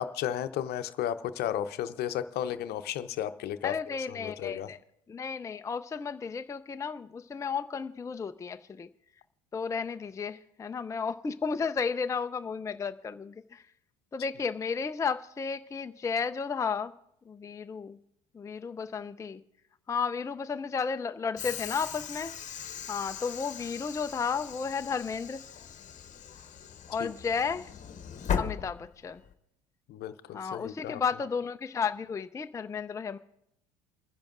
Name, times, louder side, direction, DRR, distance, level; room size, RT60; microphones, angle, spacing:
voice 1, 0.0-4.7 27.0-27.1 29.9-31.0, left 10 dB, 55° left, 11 dB, 0.8 m, -34 dB
voice 2, 3.6-4.8 5.1-8.9 9.5-13.6 14.1-16.9 17.3-18.0 18.3-19.4 19.9-22.3 22.9-25.4 26.9-27.7 28.4-29.2 30.3-33.2, left 5 dB, 15° left, 9 dB, 0.4 m, -33 dB
Train / Sliding door, 21.4-29.3, left 8 dB, 40° left, 1.1 m, -38 dB
29.0 x 10.5 x 2.5 m, 0.80 s
hypercardioid pair, 75°, 19 cm